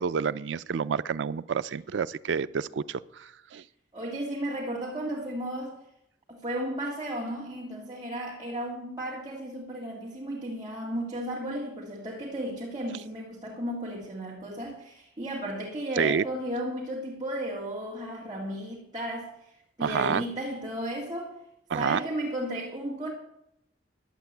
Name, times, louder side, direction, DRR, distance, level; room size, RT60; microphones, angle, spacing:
voice 1, 0.0-3.6 16.0-16.2 19.8-20.2 21.7-22.0, right 6 dB, 85° right, 0.4 m, -29 dB
voice 2, 3.9-5.8 6.3-19.3 19.8-21.3 21.7-23.1, right 1 dB, 25° right, 2.1 m, -34 dB
11.0 x 8.4 x 8.1 m
head